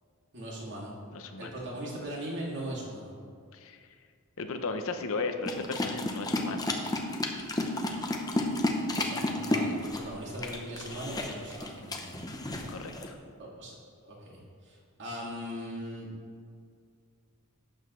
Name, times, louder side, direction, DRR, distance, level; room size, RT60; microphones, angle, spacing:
voice 1, 0.3-0.9 1.4-3.1 8.9-12.0 13.4-13.8 14.0-16.1, equal, 55° right, -4 dB, 2.4 m, -39 dB
voice 2, 1.1-1.6 3.5-3.8 4.4-6.7 12.5-13.2, left 3 dB, 65° left, 6 dB, 0.7 m, -36 dB
sound 1, 5.5-13.1, left 1 dB, 15° left, 0.8 m, -32 dB
12.0 x 8.1 x 3.2 m, 2.2 s
head